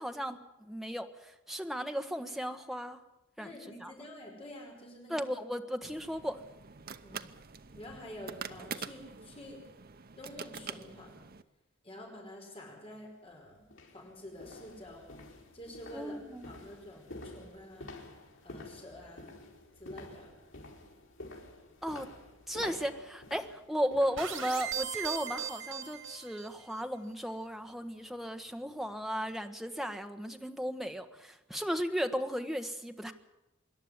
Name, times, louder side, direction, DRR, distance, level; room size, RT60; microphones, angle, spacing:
voice 1, 0.0-3.0 3.4-3.5 3.8-3.9 5.1-6.4 15.9-16.5 21.8-22.1 22.5-33.1, equal, ahead, 5 dB, 1.3 m, -35 dB
voice 2, 3.4-5.2 7.0-7.3 7.7-9.6 10.2-11.2 11.8-13.7 13.9-15.1 15.5-16.2 16.5-17.9 18.4-19.3 19.8-20.3, left 1 dB, 30° left, -1 dB, 5.1 m, -48 dB
sound 1, 5.9-11.4, right 6 dB, 50° right, 0.9 m, -45 dB
sound 2, 12.9-13.1 13.6-24.9 25.3-25.5 25.9-26.0, left 2 dB, 80° left, 4.8 m, -49 dB
sound 3, 24.2-26.6, right 8 dB, 85° right, 2.8 m, -38 dB
25.5 x 11.5 x 9.6 m, 0.96 s
head